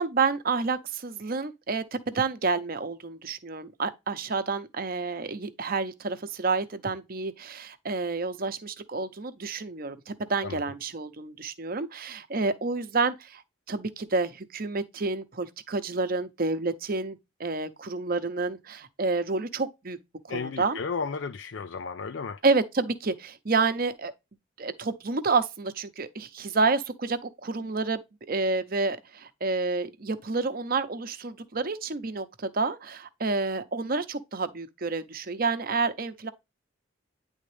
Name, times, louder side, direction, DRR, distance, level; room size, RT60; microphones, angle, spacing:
voice 1, 0.0-13.4 13.7-20.0 20.3-20.8 22.4-24.1 24.6-28.0 28.3-36.3, right 4 dB, 50° right, 0.8 m, -29 dB
voice 2, 20.3-22.4, left 5 dB, 70° left, 0.5 m, -33 dB
9.6 x 3.6 x 3.3 m
head